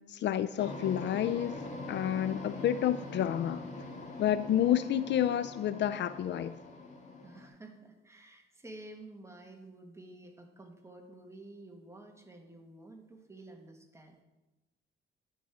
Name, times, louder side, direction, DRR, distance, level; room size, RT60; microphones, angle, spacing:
voice 1, 0.0-1.6 1.9-3.6 4.2-6.5, left 11 dB, 65° left, 0.5 m, -29 dB
sound 1, 0.6-7.5, left 2 dB, 40° left, 2.7 m, -43 dB
voice 2, 7.2-14.2, right 2 dB, 15° right, 1.8 m, -51 dB
11.0 x 5.4 x 6.2 m
cardioid pair, 90°, 20 cm